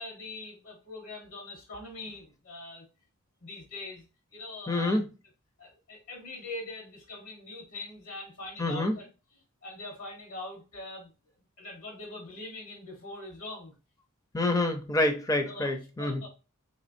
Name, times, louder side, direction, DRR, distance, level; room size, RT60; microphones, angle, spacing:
voice 1, 0.0-2.8 3.4-4.0 4.3-5.0 5.6-9.1 9.3-11.1 11.6-13.8 15.4-15.7 16.0-16.3, left 2 dB, 70° left, 0 dB, 1.2 m, -42 dB
voice 2, 4.7-5.1 8.6-9.0 14.3-16.2, left 2 dB, 15° left, 6 dB, 0.5 m, -27 dB
4.2 x 3.3 x 2.6 m, 0.31 s
head